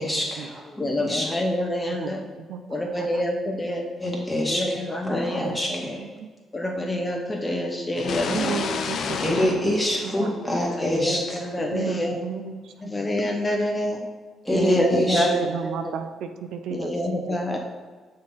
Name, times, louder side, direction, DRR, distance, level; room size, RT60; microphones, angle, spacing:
voice 1, 0.0-1.3 4.0-4.8 5.0-6.0 9.2-11.4 14.4-15.2, equal, 5° left, -3 dB, 1.9 m, -26 dB
voice 2, 0.7-2.2 2.7-3.9 4.5-6.0 6.5-8.6 10.1-10.3 10.8-12.2 12.8-14.0 14.5-15.7 16.7-17.6, left 1 dB, 25° left, 1 dB, 0.8 m, -26 dB
voice 3, 2.4-3.2 5.2-5.6 6.0-6.3 6.6-6.7 8.3-9.7 10.0-10.3 11.7-13.1 15.1-16.9 17.3-17.4, right 7 dB, 80° right, 7 dB, 0.5 m, -34 dB
sound 1, 8.0-10.8, left 6 dB, 65° left, 0.5 m, -31 dB
6.4 x 3.8 x 5.6 m, 1.4 s
cardioid pair, 90°, 0 cm